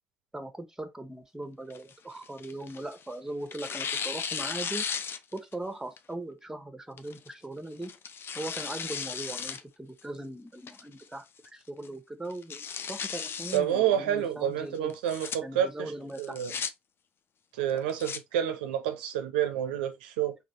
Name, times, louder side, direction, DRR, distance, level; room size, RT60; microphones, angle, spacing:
voice 1, 0.3-4.8 5.3-7.9 8.3-11.2 11.5-14.9 15.4-16.6, right 1 dB, 10° right, 1.0 m, -39 dB
Tearing, 1.7-3.0 3.5-5.5 6.0-6.1 7.0-7.3 7.8-9.6 10.0-10.1 10.7-11.1 11.4-11.5 11.8-11.9 12.3-13.6 14.9-15.4 16.2-16.7 17.7-18.2, left 6 dB, 50° left, 0.5 m, -35 dB
voice 2, 13.5-15.9 16.2-16.5 17.6-20.4, right 10 dB, 85° right, 0.4 m, -29 dB
3.9 x 2.7 x 3.0 m
hypercardioid pair, 50°, 5 cm